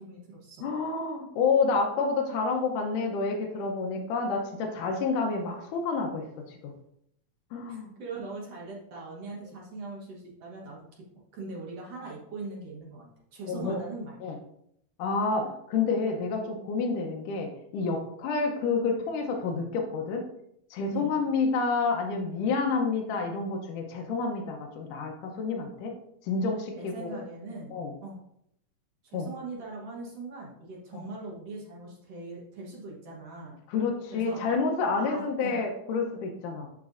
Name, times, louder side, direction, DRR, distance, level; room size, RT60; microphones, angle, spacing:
voice 1, 0.0-0.7 7.7-11.0 11.3-14.1 20.9-21.1 26.7-27.7 28.0-28.2 29.0-33.6 34.1-34.4 35.0-35.6, right 3 dB, 60° right, -3 dB, 2.0 m, -41 dB
voice 2, 0.6-6.7 7.5-7.9 13.5-13.8 14.2-14.4 15.0-20.3 20.7-25.9 26.2-27.1 27.7-27.9 29.1-29.3 30.9-31.0 33.7-36.7, left 4 dB, 80° left, 1 dB, 2.3 m, -29 dB
11.5 x 4.2 x 2.5 m, 0.73 s
omnidirectional pair, 3.6 m